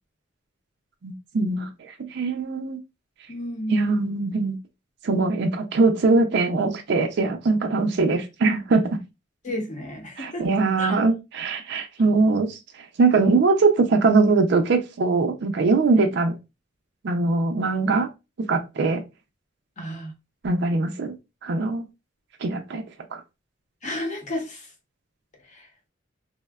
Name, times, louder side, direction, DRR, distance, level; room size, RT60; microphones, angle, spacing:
voice 1, 1.0-1.7 2.0-2.8 3.7-4.6 5.0-8.9 10.2-12.6 13.0-16.3 17.0-18.1 18.5-19.0 20.4-21.2 21.4-21.8 22.4-22.8 23.1-23.2, right 3 dB, 60° right, 0.4 m, -21 dB
voice 2, 3.3-4.2 9.4-10.5 10.8-11.0 19.8-20.1 23.8-24.7 25.5-25.7, left 1 dB, 40° left, 0.7 m, -32 dB
3.4 x 2.1 x 2.3 m
head